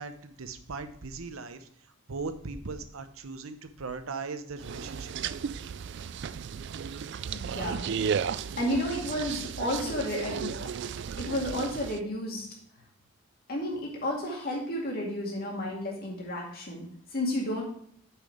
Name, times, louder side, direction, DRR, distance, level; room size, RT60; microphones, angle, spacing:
voice 1, 0.0-1.7 2.1-5.1, right 4 dB, 75° right, 10 dB, 0.8 m, -38 dB
sound 1, 4.6-12.0, right 7 dB, 55° right, 0.3 m, -34 dB
voice 2, 7.3-7.9 8.6-10.5 11.2-12.5 13.5-16.9 17.1-17.6, left 1 dB, 45° left, -2 dB, 2.2 m, -32 dB
6.7 x 6.1 x 4.8 m, 0.63 s
head